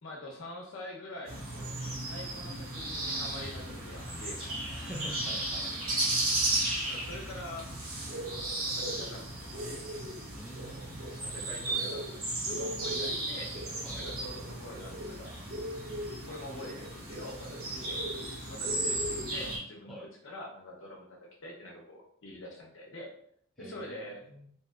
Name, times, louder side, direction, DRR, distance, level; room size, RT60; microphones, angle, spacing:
voice 1, 0.0-4.6 6.9-7.7 8.1-9.7 10.6-12.2 12.5-13.5 13.9-15.4 16.2-23.1 23.6-24.2, left 1 dB, 60° left, -2 dB, 0.7 m, -45 dB
sound 1, 1.2-19.6, right 2 dB, 80° right, 1.1 m, -35 dB
voice 2, 4.7-5.9 10.3-11.4 13.8-14.1 19.9-20.1 23.6-24.5, right 1 dB, ahead, -5 dB, 0.4 m, -46 dB
2.8 x 2.7 x 2.3 m, 0.66 s
head